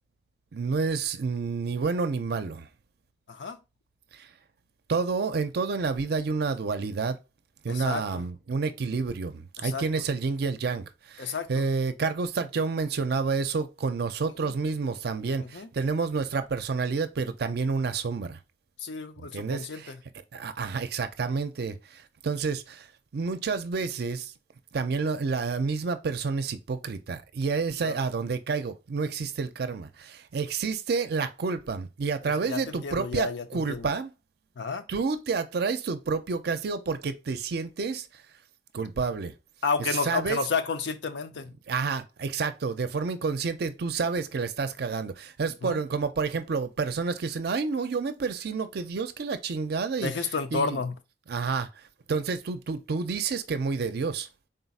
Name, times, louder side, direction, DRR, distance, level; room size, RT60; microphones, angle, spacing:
voice 1, 0.5-2.7 4.1-4.3 4.9-7.2 7.6-18.4 19.2-19.9 20.3-22.9 23.1-24.3 24.7-34.1 34.9-38.1 38.7-39.3 40.0-40.4 41.7-50.1 50.5-50.8 51.3-51.7 52.1-54.3, right 4 dB, 60° right, 0.5 m, -29 dB
voice 2, 3.3-3.6 7.7-8.2 9.6-9.9 11.2-11.7 14.4-14.5 15.4-15.7 18.8-20.0 27.8-28.0 32.2-33.9 34.6-34.8 39.6-41.5 45.6-45.8 50.0-51.0, left 4 dB, 85° left, 0.6 m, -31 dB
3.8 x 2.4 x 4.0 m
head